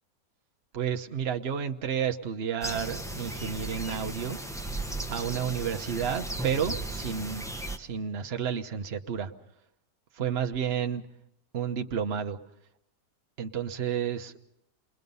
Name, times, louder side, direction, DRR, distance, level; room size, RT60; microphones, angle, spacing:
voice 1, 0.7-4.4 5.1-7.4 7.8-9.3 10.1-11.0 11.5-12.4 13.4-14.3, right 8 dB, 45° right, 6 dB, 1.0 m, -31 dB
sound 1, 2.6-7.8, right 1 dB, 5° left, 0.4 m, -36 dB
28.0 x 20.5 x 5.4 m, 0.79 s
omnidirectional pair, 1.9 m